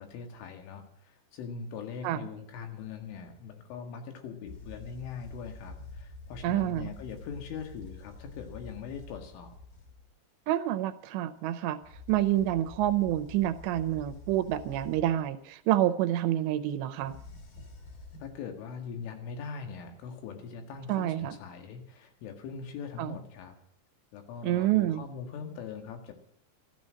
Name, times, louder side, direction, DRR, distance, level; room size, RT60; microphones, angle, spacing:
voice 1, 0.0-9.6 18.2-23.5 24.1-26.1, left 6 dB, 90° left, 5 dB, 4.4 m, -41 dB
sound 1, 4.4-10.1 11.8-15.3 17.0-18.4, left 2 dB, 50° left, 4.6 m, -47 dB
voice 2, 6.4-6.9 10.5-11.8 12.1-17.2 20.9-21.4 23.0-23.1 24.4-25.0, right 13 dB, 80° right, 10 dB, 2.7 m, -28 dB
13.5 x 13.5 x 6.3 m, 0.68 s
omnidirectional pair, 5.4 m